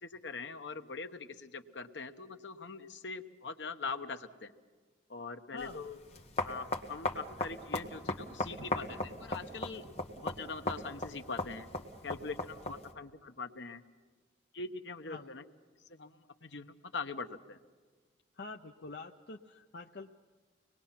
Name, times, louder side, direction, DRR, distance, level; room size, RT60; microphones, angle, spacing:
voice 1, 0.0-4.5 5.1-6.0 6.4-9.9 10.2-11.7 12.0-13.8 14.5-15.4 15.9-17.6, left 4 dB, 80° left, 7 dB, 1.1 m, -42 dB
voice 2, 5.5-5.8 15.1-15.3 18.3-20.1, left 3 dB, 65° left, 3 dB, 0.7 m, -46 dB
sound 1, 5.6-12.9, left 1 dB, 35° left, 1.8 m, -38 dB
25.0 x 20.5 x 5.9 m, 1.4 s
head